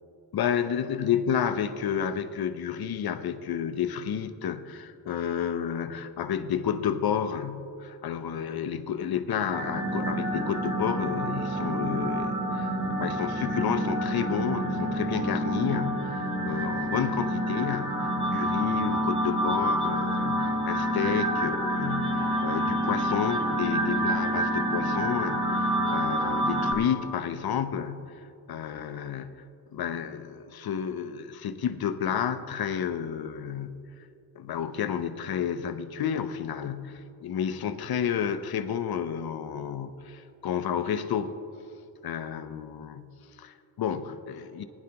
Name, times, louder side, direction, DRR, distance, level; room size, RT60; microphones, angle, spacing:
voice 1, 0.3-29.4 29.7-33.9 34.4-41.3 42.0-44.6, left 8 dB, 70° left, 10 dB, 0.7 m, -31 dB
sound 1, 9.5-26.7, right 1 dB, 15° right, 2.2 m, -28 dB
19.5 x 10.5 x 2.9 m, 2.7 s
wide cardioid pair, 120°, 39 cm